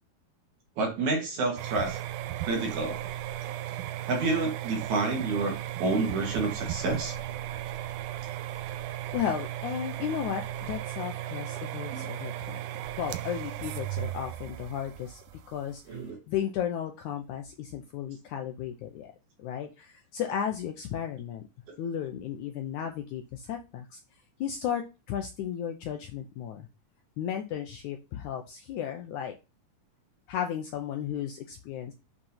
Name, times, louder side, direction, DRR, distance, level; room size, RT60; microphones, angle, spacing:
voice 1, 0.8-2.0 2.5-3.0 4.1-7.1 11.9-12.1 15.9-16.2, right 3 dB, 55° right, 3 dB, 2.9 m, -29 dB
sound 1, 1.6-16.1, right 13 dB, 80° right, 2.5 m, -36 dB
voice 2, 9.1-12.7 13.0-15.2 15.5-16.0 16.3-19.1 19.4-21.4 21.8-24.0 24.4-26.7 27.2-29.4 30.3-31.9, left 9 dB, 75° left, 4 dB, 1.9 m, -34 dB
7.0 x 5.4 x 5.6 m, 0.28 s
omnidirectional pair, 4.3 m